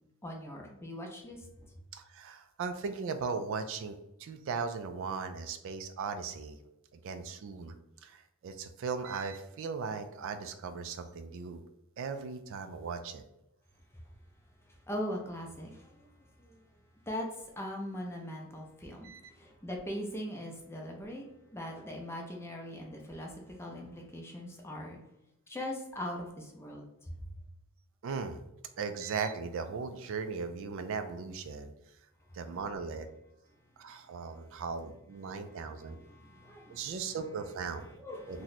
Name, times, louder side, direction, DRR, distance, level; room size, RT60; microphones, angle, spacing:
voice 1, 0.2-1.4 14.9-16.1 16.4-16.5 17.1-17.3 17.6-21.3 21.5-25.0 25.5-26.8 35.9-37.0 38.0-38.4, equal, 10° left, 0 dB, 0.5 m, -40 dB
voice 2, 1.9-6.6 7.0-7.7 8.0-11.6 12.0-13.3 19.0-19.2 28.0-28.4 28.8-31.7 32.3-33.1 33.8-36.0 36.7-37.9 38.3-38.4, right 5 dB, 60° right, 9 dB, 0.3 m, -38 dB
2.9 x 2.1 x 4.0 m, 0.85 s
head